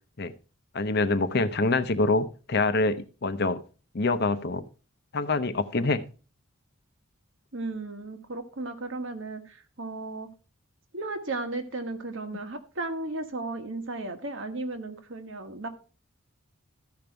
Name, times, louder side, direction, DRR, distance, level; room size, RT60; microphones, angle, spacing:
voice 1, 0.7-3.6 3.9-4.6 5.1-6.0, left 3 dB, 50° left, 12 dB, 0.7 m, -25 dB
voice 2, 7.5-10.3 10.9-15.7, right 2 dB, 60° right, 7 dB, 1.3 m, -35 dB
13.5 x 5.3 x 4.4 m, 0.35 s
head